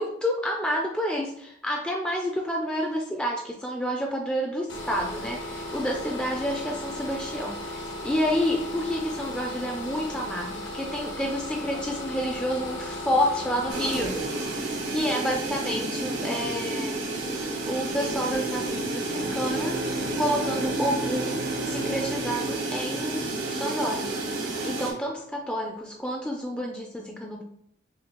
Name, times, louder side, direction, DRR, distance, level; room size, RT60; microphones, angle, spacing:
voice 1, 0.0-14.5 14.9-17.0 17.7-23.2 23.5-27.4, equal, 5° left, 0 dB, 0.4 m, -29 dB
sound 1, 4.7-20.7, left 1 dB, 70° left, 1.0 m, -38 dB
sound 2, 13.7-24.9, right 2 dB, 75° right, 1.1 m, -31 dB
sound 3, 19.1-23.8, right 2 dB, 60° right, 0.6 m, -36 dB
6.3 x 2.4 x 3.0 m, 0.71 s
head